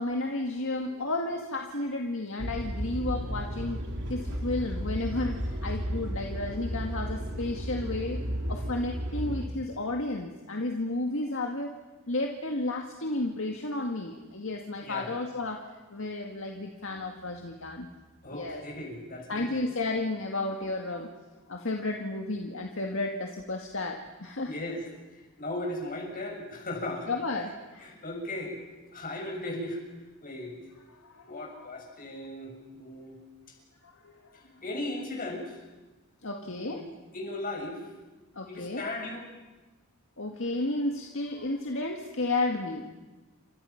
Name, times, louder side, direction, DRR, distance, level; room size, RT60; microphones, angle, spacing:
voice 1, 0.0-3.8 4.1-8.2 8.5-11.7 12.1-15.6 15.9-17.9 18.3-18.6 19.3-21.1 21.5-24.5 27.1-27.9 31.0-31.7 33.8-34.4 36.2-36.8 38.3-38.9 40.2-42.8, left 2 dB, 60° left, 2 dB, 2.0 m, -32 dB
sound 1, 2.4-9.5, equal, 55° right, 3.8 m, -33 dB
voice 2, 14.8-15.1 18.2-19.6 24.5-24.8 25.4-27.1 27.8-28.6 28.9-29.8 30.2-30.6 31.3-33.2 34.3-35.6 36.4-36.9 37.1-37.8 38.5-39.3, left 1 dB, 40° left, 1 dB, 6.7 m, -37 dB
29.5 x 26.0 x 5.9 m, 1.2 s
head